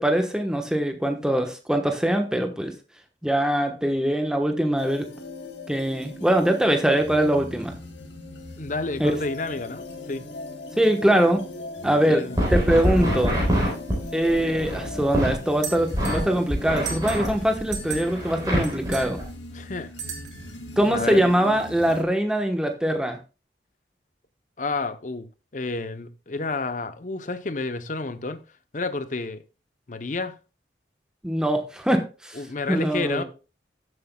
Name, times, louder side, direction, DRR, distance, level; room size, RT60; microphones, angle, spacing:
voice 1, 0.0-2.7 3.2-5.1 5.7-7.7 9.0-9.1 10.8-11.4 11.8-12.2 12.5-13.5 14.1-19.2 20.8-23.2 31.2-33.2, right 1 dB, 5° right, 1.0 m, -23 dB
sound 1, 4.8-22.0, left 1 dB, 80° left, 1.9 m, -39 dB
voice 2, 8.6-10.3 12.1-12.5 19.5-19.9 20.9-21.2 24.6-25.3 25.5-28.4 28.7-29.4 29.9-30.4 32.4-33.2, left 3 dB, 45° left, 0.7 m, -30 dB
sound 2, 12.3-15.3 15.9-19.3, equal, 20° right, 4.0 m, -25 dB
sound 3, 15.6-16.3 16.8-17.4 17.7-18.2 18.6-19.1 20.0-20.5, right 7 dB, 75° right, 2.6 m, -35 dB
14.0 x 7.9 x 2.2 m
head